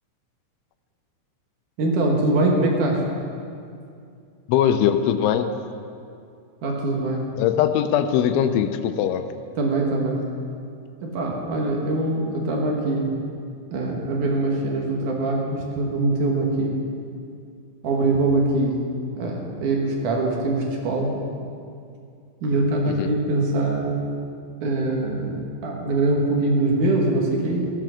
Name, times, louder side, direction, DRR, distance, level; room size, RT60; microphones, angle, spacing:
voice 1, 1.8-3.0 6.6-7.3 9.6-10.2 11.0-13.1 13.7-16.8 17.8-18.8 19.2-21.2 22.4-24.1 24.6-27.7, right 2 dB, 65° right, -1 dB, 2.2 m, -23 dB
voice 2, 4.5-5.5 7.4-9.3 22.9-23.2, left 9 dB, 85° left, 9 dB, 3.0 m, -21 dB
17.0 x 7.6 x 6.4 m, 2.4 s
omnidirectional pair, 5.4 m